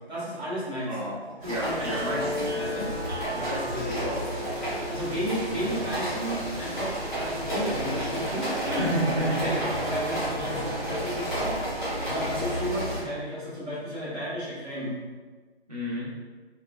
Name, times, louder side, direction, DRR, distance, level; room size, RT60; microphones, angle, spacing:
voice 1, 0.1-1.0 1.4-2.1 2.4-2.9 4.9-11.6 12.0-14.9, equal, 75° right, -8 dB, 1.4 m, -33 dB
sound 1, 1.4-13.0, right 1 dB, 5° right, 0.5 m, -32 dB
voice 2, 1.4-2.3 3.3-4.2 8.8-9.6 15.7-16.1, equal, 35° right, -8 dB, 0.9 m, -30 dB
sound 2, 1.8-12.0, equal, 90° right, 0.6 m, -37 dB
2.7 x 2.4 x 2.3 m, 1.4 s
figure-of-eight pair, 150°, 33 cm